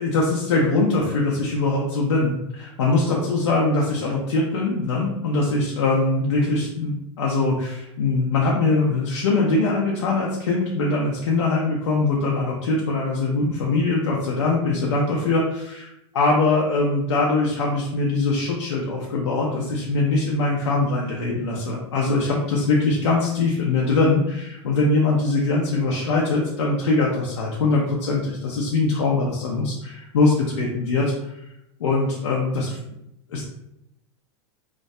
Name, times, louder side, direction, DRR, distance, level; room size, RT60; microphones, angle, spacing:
voice 1, 0.0-15.9 16.1-31.3 31.8-32.8 33.3-33.4, left 3 dB, 85° left, -3 dB, 0.5 m, -22 dB
2.2 x 2.1 x 2.6 m, 0.83 s
hypercardioid pair, 105°, 15 cm